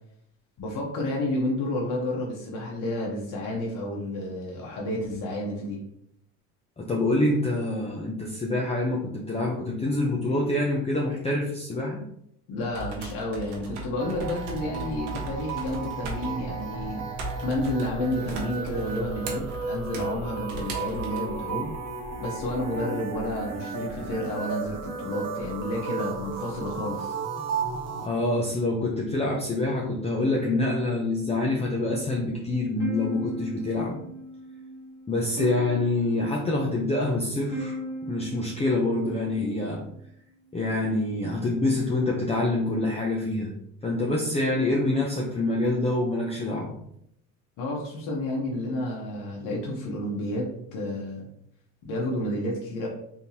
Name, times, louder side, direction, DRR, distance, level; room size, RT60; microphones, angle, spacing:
voice 1, 0.6-5.8 12.5-17.0 17.4-21.7 22.2-27.2 47.6-51.2 51.8-52.9, left 1 dB, 60° left, -3 dB, 1.0 m, -30 dB
voice 2, 6.8-12.0 28.0-34.0 35.1-37.8 38.0-39.8 40.5-43.5 43.8-46.8, left 2 dB, 15° left, -2 dB, 0.6 m, -26 dB
sound 1, 12.6-21.2, right 2 dB, 85° right, 0.9 m, -40 dB
sound 2, 14.0-28.1, right 5 dB, 45° right, 0.8 m, -34 dB
sound 3, 32.8-39.9, equal, 5° right, 1.5 m, -38 dB
3.5 x 2.9 x 2.8 m, 0.73 s
supercardioid pair, 80°, 36 cm